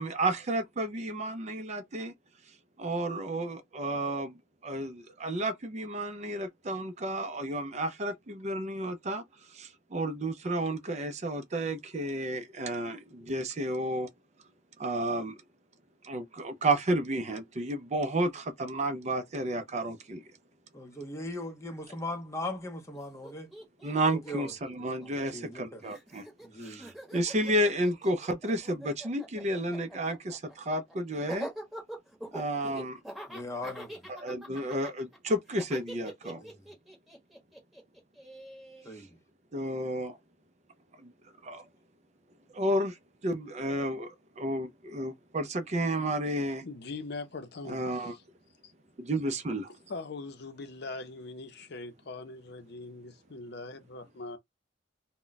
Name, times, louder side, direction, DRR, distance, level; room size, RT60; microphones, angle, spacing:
voice 1, 0.0-2.1 2.8-4.4 4.6-9.2 9.5-14.1 14.8-15.4 16.0-20.2 23.8-26.2 26.6-31.5 32.3-33.0 34.1-36.4 39.5-40.2 41.4-41.6 42.5-42.9 43.2-46.6 47.7-48.2 49.0-49.7, right 1 dB, 35° right, 0.5 m, -31 dB
voice 2, 20.7-23.5 24.3-24.5 25.0-25.8 26.4-26.9 33.3-34.0 36.4-36.6 38.8-39.1, left 1 dB, 15° left, 0.7 m, -39 dB
Laughter, 22.9-23.0 23.2-25.6 25.9-38.9, right 1 dB, ahead, 1.0 m, -44 dB
voice 3, 46.6-48.2 48.6-48.7 49.9-54.4, left 3 dB, 60° left, 0.6 m, -41 dB
2.2 x 2.2 x 3.9 m
head